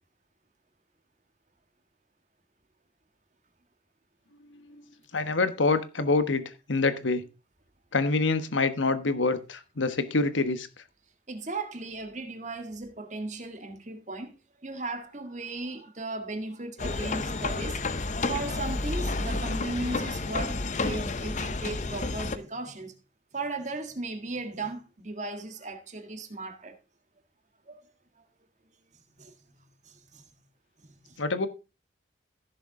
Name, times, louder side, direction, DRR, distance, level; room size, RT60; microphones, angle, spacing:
voice 1, 4.4-4.8 5.1-7.2 7.9-10.7 31.2-31.5, left 3 dB, 90° left, 1.3 m, -26 dB
voice 2, 11.3-14.3 14.6-17.8 18.3-22.9 23.3-26.8 27.7-27.8 29.1-30.3 30.8-31.2, right 3 dB, 40° right, 1.7 m, -37 dB
sound 1, 16.8-22.4, left 3 dB, 40° left, 0.8 m, -30 dB
15.0 x 6.9 x 3.7 m
head